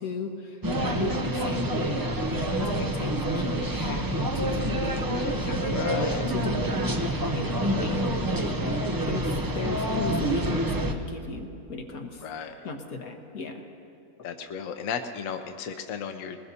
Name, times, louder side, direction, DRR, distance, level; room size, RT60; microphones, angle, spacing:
voice 1, 0.0-8.8 9.1-12.2 12.6-13.6, left 4 dB, 85° left, 3 dB, 1.6 m, -37 dB
sound 1, 0.6-10.9, right 1 dB, 30° right, 0.3 m, -27 dB
voice 2, 5.7-6.2 12.2-12.7 14.2-16.4, left 7 dB, 70° left, 6 dB, 1.0 m, -34 dB
20.5 x 20.0 x 2.8 m, 2.6 s
omnidirectional pair, 1.5 m